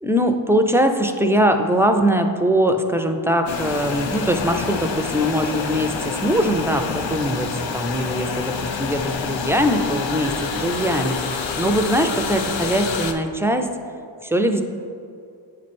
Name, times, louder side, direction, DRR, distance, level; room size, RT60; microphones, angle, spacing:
voice 1, 0.0-11.2 11.6-13.7 14.2-14.6, equal, 5° right, 6 dB, 0.4 m, -21 dB
sound 1, 3.5-13.1, left 5 dB, 75° left, 0.6 m, -27 dB
8.5 x 3.2 x 4.2 m, 2.4 s
cardioid pair, 40°, 47 cm